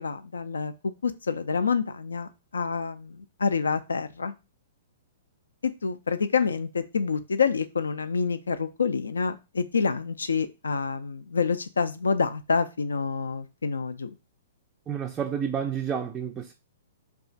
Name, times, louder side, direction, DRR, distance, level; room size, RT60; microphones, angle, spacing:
voice 1, 0.0-4.3 5.6-14.1, left 5 dB, 80° left, 0.3 m, -27 dB
voice 2, 14.9-16.5, right 7 dB, 20° right, 0.3 m, -30 dB
2.4 x 2.3 x 3.8 m
figure-of-eight pair, 115°, 0 cm